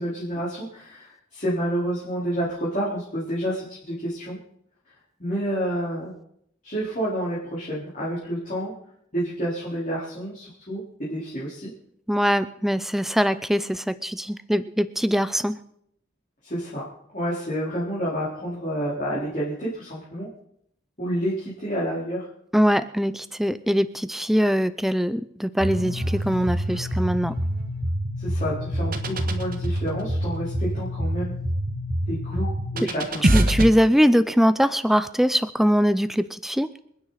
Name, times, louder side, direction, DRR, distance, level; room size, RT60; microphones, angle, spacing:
voice 1, 0.0-4.4 5.2-6.1 6.6-8.7 9.1-11.7 16.4-16.8 17.1-20.3 21.0-22.3 28.2-31.3 32.1-33.4, equal, 40° left, -7 dB, 4.0 m, -29 dB
voice 2, 12.1-15.5 22.5-27.3 33.3-36.7, equal, ahead, 13 dB, 0.5 m, -22 dB
sound 1, 25.6-33.7, right 1 dB, 45° right, 1.4 m, -26 dB
27.5 x 9.7 x 4.1 m, 0.72 s
head